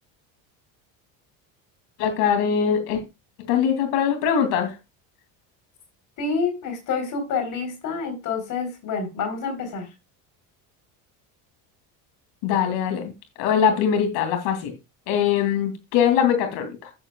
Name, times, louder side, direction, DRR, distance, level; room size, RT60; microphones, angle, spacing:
voice 1, 2.0-3.0 3.5-4.7 12.4-13.1 13.4-14.7 15.1-16.7, left 8 dB, 75° left, 2.8 m, -22 dB
voice 2, 6.2-9.9, left 5 dB, 50° left, 4.0 m, -28 dB
10.5 x 10.5 x 2.3 m
cardioid pair, 135°, 39 cm